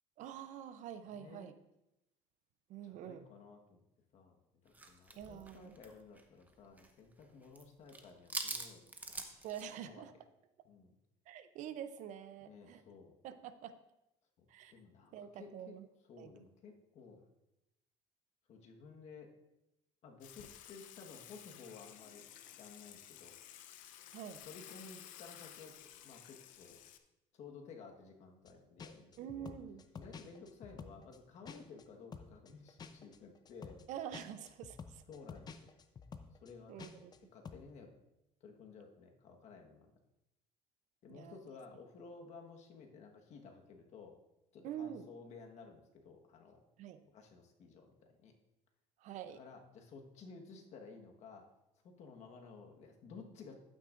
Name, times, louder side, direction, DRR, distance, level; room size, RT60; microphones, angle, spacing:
voice 1, 0.2-1.5 2.7-3.3 5.2-5.8 9.4-10.1 11.3-12.8 13.2-13.8 14.5-14.7 15.1-15.9 16.2-16.3 24.1-24.4 29.2-29.8 33.9-35.0 36.7-37.1 41.1-41.4 44.6-45.1 46.8-47.0 49.0-49.4, right 9 dB, 65° right, 11 dB, 0.7 m, -46 dB
voice 2, 1.0-1.5 2.8-3.8 4.1-4.4 4.6-8.8 9.8-10.0 10.6-10.9 12.4-13.1 14.4-15.8 16.1-17.2 18.5-19.3 20.0-22.3 22.6-23.4 24.4-25.7 26.0-26.8 27.3-29.5 29.9-33.8 35.1-35.6 36.4-37.1 37.3-37.9 38.4-39.9 41.0-44.2 44.5-46.6 47.1-48.3 49.4-51.5 51.8-53.5, left 4 dB, 55° left, 2 dB, 1.4 m, -54 dB
sound 1, 4.7-6.9 7.2-7.6 7.9-9.6, right 2 dB, 10° right, 0.9 m, -44 dB
Water / Water tap faucet / Sink (filling or washing), 20.2-27.0, left 11 dB, 80° left, 0.7 m, -54 dB
sound 2, 28.5-28.6 28.8-31.9 32.1-37.2 37.5-37.7, left 5 dB, 30° left, 0.6 m, -50 dB
11.0 x 9.2 x 2.6 m, 0.89 s
cardioid pair, 125°, 13 cm